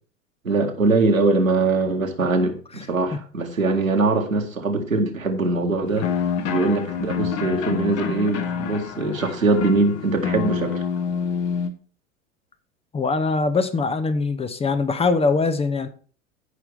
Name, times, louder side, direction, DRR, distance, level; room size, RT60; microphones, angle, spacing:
voice 1, 0.4-6.1 6.5-10.8, right 3 dB, 85° right, 2 dB, 2.0 m, -22 dB
sound 1, 6.0-11.7, left 6 dB, 40° left, 1.3 m, -27 dB
voice 2, 12.9-15.9, left 4 dB, 15° left, 11 dB, 0.8 m, -22 dB
15.5 x 5.9 x 3.5 m, 0.40 s
figure-of-eight pair, 85°, 39 cm